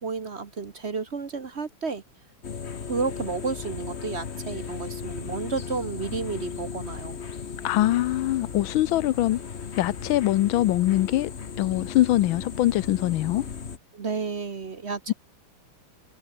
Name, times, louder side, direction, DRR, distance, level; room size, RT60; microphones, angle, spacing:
voice 1, 0.0-2.0 2.9-7.2 13.9-15.1, right 4 dB, 40° right, 1.2 m, -31 dB
sound 1, 2.4-13.8, left 6 dB, 40° left, 1.4 m, -36 dB
voice 2, 7.6-9.4 9.8-11.3 11.6-13.4, left 15 dB, 90° left, 1.5 m, -23 dB
omnidirectional pair, 2.1 m